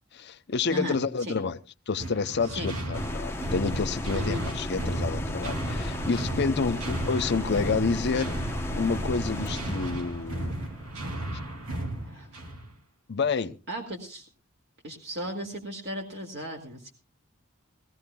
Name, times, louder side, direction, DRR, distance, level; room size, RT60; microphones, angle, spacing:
voice 1, 0.1-1.6 1.9-8.3 8.8-10.5 11.3-11.4 13.1-13.6, left 4 dB, 50° left, 0.6 m, -29 dB
voice 2, 0.7-1.4 2.4-2.7 4.1-4.5 6.7-6.8 12.0-12.3 13.7-14.3 14.8-16.9, equal, 50° right, 2.2 m, -36 dB
sound 1, 2.0-12.7, right 1 dB, 85° right, 2.6 m, -34 dB
sound 2, 2.9-11.9, left 1 dB, 10° left, 0.8 m, -35 dB
21.5 x 15.5 x 2.2 m
head